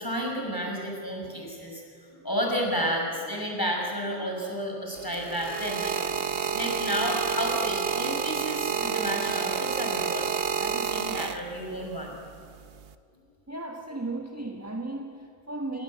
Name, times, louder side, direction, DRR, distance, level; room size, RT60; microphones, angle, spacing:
voice 1, 0.0-1.8 2.1-12.2, equal, 10° left, 0 dB, 6.1 m, -31 dB
sound 1, 5.0-11.8 12.6-12.9, right 7 dB, 45° right, 0.8 m, -29 dB
voice 2, 13.5-15.8, right 2 dB, 10° right, 2 dB, 1.1 m, -35 dB
27.5 x 20.0 x 8.7 m, 2.3 s
omnidirectional pair, 2.1 m